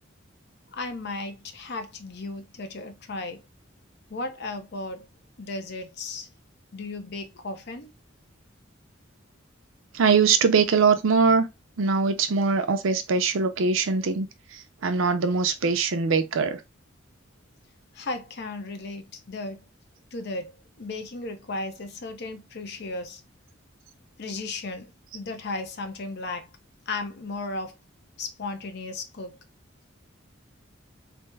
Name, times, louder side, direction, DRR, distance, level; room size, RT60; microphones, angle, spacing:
voice 1, 0.8-3.4 4.1-5.1 5.4-6.3 6.7-7.9 18.0-19.6 20.1-20.5 20.8-23.2 24.2-24.9 25.1-26.5 26.9-27.7 28.2-29.4, left 2 dB, 55° left, 0.6 m, -35 dB
voice 2, 9.9-11.5 11.8-14.3 14.8-16.6, right 5 dB, 80° right, 0.5 m, -22 dB
3.4 x 2.0 x 3.2 m
head